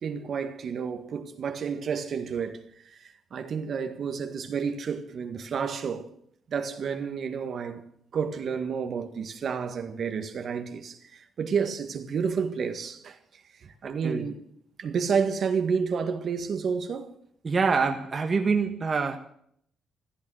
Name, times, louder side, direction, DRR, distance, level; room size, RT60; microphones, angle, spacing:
voice 1, 0.0-2.6 2.9-6.1 6.5-7.8 8.1-13.2 13.6-14.4 14.8-17.1, right 6 dB, 55° right, 1.8 m, -30 dB
voice 2, 13.8-14.3 17.4-19.2, right 5 dB, 35° right, 1.5 m, -25 dB
15.0 x 13.5 x 6.4 m
cardioid pair, 90°, 0 cm